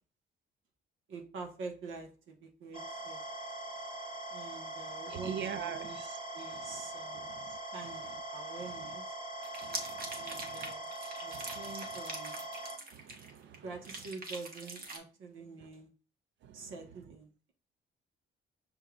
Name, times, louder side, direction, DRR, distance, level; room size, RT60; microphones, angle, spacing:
voice 1, 1.1-3.3 4.3-6.0 6.3-7.3 7.7-9.2 10.2-10.9 11.2-12.4 13.6-15.9 16.5-17.5, right 4 dB, 85° right, 1.2 m, -46 dB
sound 1, 2.7-12.8, right 1 dB, 30° right, 1.7 m, -42 dB
voice 2, 5.1-6.2 6.5-6.8 7.1-7.6 8.6-8.7 9.6-10.7 11.3-12.0 12.9-13.7 15.6-15.7 16.4-16.7, right 9 dB, 65° right, 0.6 m, -45 dB
sound 2, 9.4-13.5 13.8-15.0, right 3 dB, 50° right, 1.1 m, -43 dB
6.3 x 3.5 x 2.3 m
cardioid pair, 90°, 20 cm